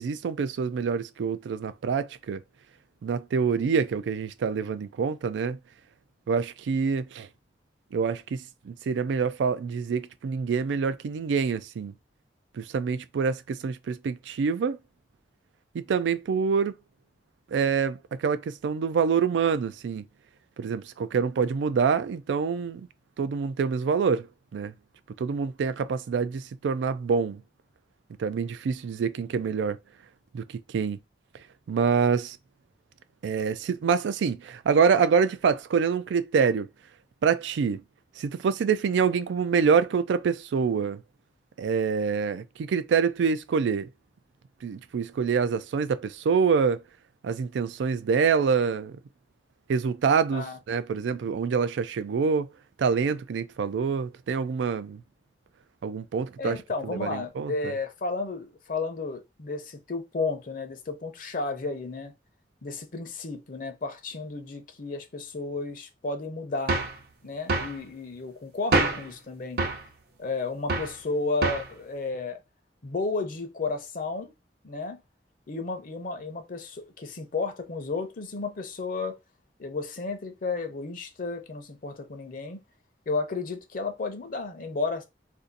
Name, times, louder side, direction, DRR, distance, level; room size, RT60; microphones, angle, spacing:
voice 1, 0.0-2.4 3.0-5.6 6.3-7.3 7.9-11.9 12.5-14.8 15.7-16.8 17.5-20.1 20.6-22.9 23.2-24.3 24.5-24.7 25.2-27.4 28.2-29.8 30.3-31.0 31.7-32.4 33.2-36.7 37.2-37.8 38.2-41.0 41.6-43.9 44.6-46.8 47.2-49.0 49.7-52.5 52.8-55.0 55.8-57.7, right 6 dB, 90° right, 0.3 m, -26 dB
voice 2, 56.4-62.1 62.6-66.8 67.2-69.6 70.2-72.4 72.8-74.3 74.6-75.0 75.5-79.2 79.6-82.6 83.1-85.1, left 3 dB, 50° left, 0.6 m, -32 dB
sound 1, 66.7-67.0 67.5-67.8 68.7-69.1 69.6-69.9 70.7-71.0 71.4-71.7, right 3 dB, 60° right, 0.7 m, -26 dB
2.6 x 2.5 x 3.8 m
head